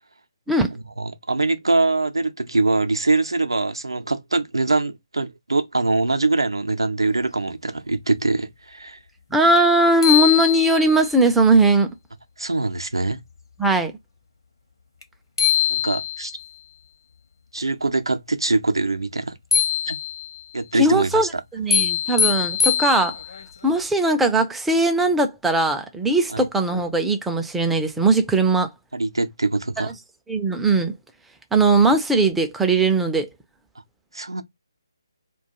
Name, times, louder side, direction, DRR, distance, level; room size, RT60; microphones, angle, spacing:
voice 1, 1.0-9.0 12.4-13.2 15.7-16.3 17.5-19.4 19.9-20.0 20.5-21.4 26.3-26.4 28.9-29.9 34.1-34.4, right 3 dB, 75° right, 0.5 m, -23 dB
voice 2, 9.3-11.9 13.6-13.9 20.8-23.2 23.6-28.7 29.8-29.9 30.3-30.9 31.5-33.3, right 2 dB, 5° right, 0.3 m, -19 dB
sound 1, 9.6-9.7 10.0-11.1 15.0-15.1 15.4-16.4 19.5-20.4 21.7-23.4, left 8 dB, 65° left, 0.7 m, -22 dB
2.3 x 2.2 x 2.8 m
figure-of-eight pair, 145°, 2 cm